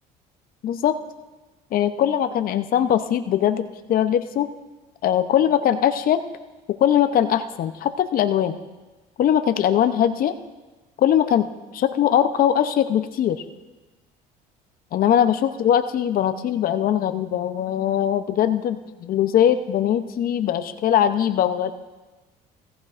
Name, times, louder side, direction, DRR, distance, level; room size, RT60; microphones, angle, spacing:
voice 1, 0.6-1.0 1.7-4.5 5.0-6.2 6.7-8.5 9.2-10.3 11.0-11.5 11.7-13.4 14.9-21.7, left 10 dB, 50° left, 10 dB, 0.7 m, -21 dB
16.5 x 15.0 x 2.5 m, 1.2 s
supercardioid pair, 80°, 18 cm